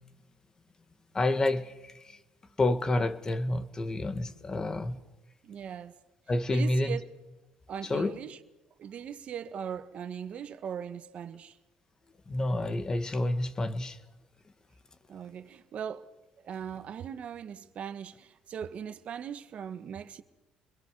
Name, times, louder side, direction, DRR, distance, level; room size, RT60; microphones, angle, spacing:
voice 1, 1.1-2.2 2.6-5.0 6.3-7.0 7.8-8.2 12.3-14.0, left 2 dB, 25° left, 1.8 m, -29 dB
voice 2, 5.4-5.9 6.5-7.1 7.7-8.4 8.8-11.6 15.1-16.1 16.4-20.2, right 8 dB, 50° right, 1.4 m, -39 dB
28.5 x 22.0 x 6.8 m
cardioid pair, 110°, 3 cm